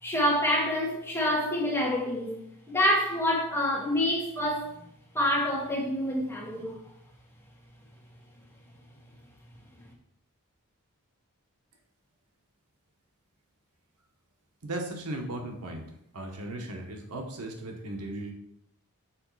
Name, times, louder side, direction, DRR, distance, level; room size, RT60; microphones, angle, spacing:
voice 1, 0.0-2.4 2.7-4.7 5.1-6.8, equal, 10° left, -4 dB, 1.7 m, -27 dB
voice 2, 14.6-15.9 16.1-18.3, right 1 dB, 80° right, 3 dB, 1.2 m, -36 dB
6.3 x 4.0 x 4.7 m, 0.75 s
head